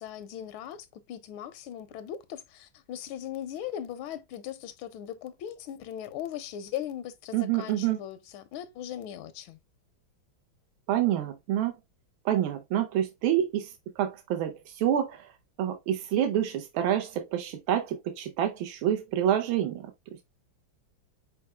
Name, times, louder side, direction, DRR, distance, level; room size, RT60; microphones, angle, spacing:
voice 1, 0.0-9.6, left 10 dB, 85° left, 1.4 m, -39 dB
voice 2, 7.3-8.0 10.9-11.7 12.2-15.3 15.6-19.9, right 11 dB, 90° right, 1.5 m, -27 dB
4.7 x 4.3 x 2.2 m
omnidirectional pair, 2.2 m